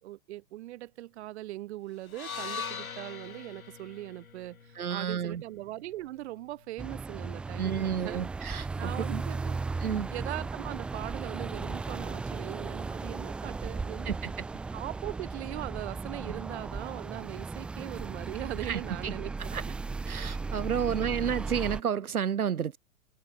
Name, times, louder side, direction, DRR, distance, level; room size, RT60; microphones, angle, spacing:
voice 1, 0.0-8.2 8.8-9.6 10.1-14.1 14.7-19.6, right 16 dB, 50° right, 1.6 m, -40 dB
sound 1, 2.1-6.3, left 6 dB, 75° left, 5.2 m, -42 dB
voice 2, 4.7-5.4 7.6-9.2 9.8-10.1 14.1-14.4 18.6-19.1 19.5-19.6 20.1-22.8, right 8 dB, 80° right, 0.9 m, -31 dB
sound 2, 6.8-21.8, right 4 dB, 5° right, 0.4 m, -36 dB
figure-of-eight pair, 105°, 43 cm